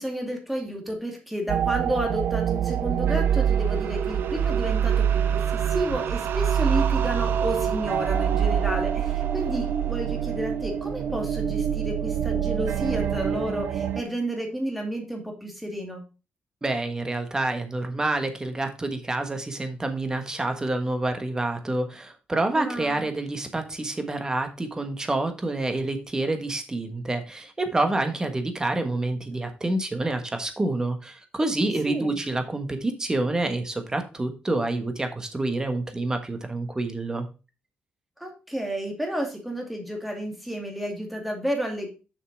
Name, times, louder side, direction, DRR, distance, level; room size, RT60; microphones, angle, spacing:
voice 1, 0.0-16.0 22.6-23.1 31.9-32.2 38.2-41.9, equal, ahead, 1 dB, 2.3 m, -31 dB
sound 1, 1.5-14.0, right 8 dB, 75° right, 0.7 m, -25 dB
voice 2, 16.6-37.3, right 2 dB, 20° right, 7 dB, 1.3 m, -28 dB
6.9 x 5.7 x 4.5 m, 0.31 s
cardioid pair, 130°, 4 cm